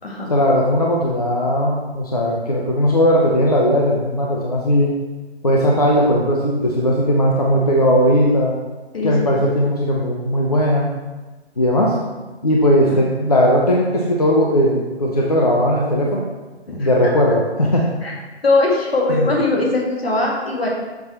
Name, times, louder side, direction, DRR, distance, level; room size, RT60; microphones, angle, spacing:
voice 1, 0.3-4.9 5.4-8.5 9.0-10.9 11.6-12.0 12.4-16.2 16.8-17.8 19.1-19.3, equal, 35° left, -2 dB, 0.6 m, -17 dB
voice 2, 8.9-9.4 16.7-16.9 18.0-18.1 18.4-20.7, left 2 dB, 65° left, -2 dB, 1.9 m, -20 dB
6.8 x 4.2 x 4.2 m, 1.2 s
hypercardioid pair, 175°, 33 cm